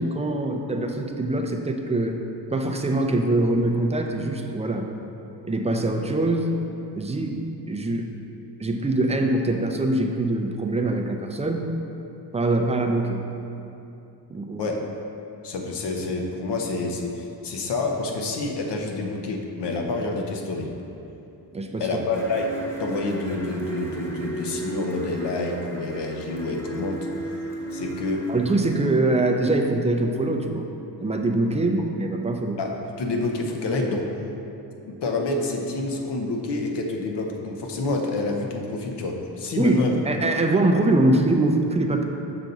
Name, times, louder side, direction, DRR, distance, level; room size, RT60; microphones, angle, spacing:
voice 1, 0.0-2.2 2.5-4.9 5.4-6.5 7.0-7.4 7.7-8.1 8.6-11.7 12.3-13.2 14.3-14.7 21.5-21.9 28.3-30.7 31.0-32.6 39.6-42.1, right 2 dB, 15° right, 3 dB, 0.3 m, -23 dB
voice 2, 15.4-20.7 21.8-22.5 22.8-27.1 27.7-28.2 32.6-32.7 33.0-34.1 34.9-40.0, left 2 dB, 80° left, 2 dB, 0.9 m, -28 dB
sound 1, 22.1-28.9, right 2 dB, 5° left, 1.0 m, -35 dB
6.7 x 6.0 x 4.0 m, 2.8 s
wide cardioid pair, 160°, 41 cm